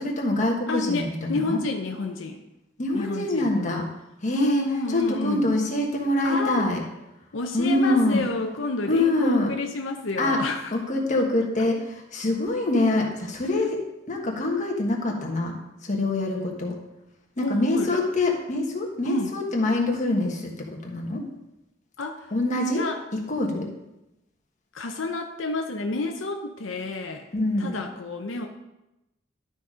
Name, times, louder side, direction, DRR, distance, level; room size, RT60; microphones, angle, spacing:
voice 1, 0.0-1.6 2.8-3.9 4.2-4.6 4.9-6.8 7.5-8.2 8.9-9.5 10.2-10.4 10.7-13.8 14.1-15.5 15.8-16.7 17.4-20.5 20.8-21.2 22.3-22.8 23.3-23.7 27.3-27.7, left 2 dB, 40° left, 0 dB, 1.4 m, -25 dB
voice 2, 0.7-2.4 2.9-3.6 4.3-5.5 6.2-6.7 7.3-10.7 13.6-13.7 17.4-18.0 19.0-19.3 22.0-22.3 22.7-23.0 24.7-27.3 27.6-28.5, left 3 dB, 85° left, 4 dB, 0.7 m, -29 dB
12.0 x 4.2 x 5.0 m, 0.93 s
head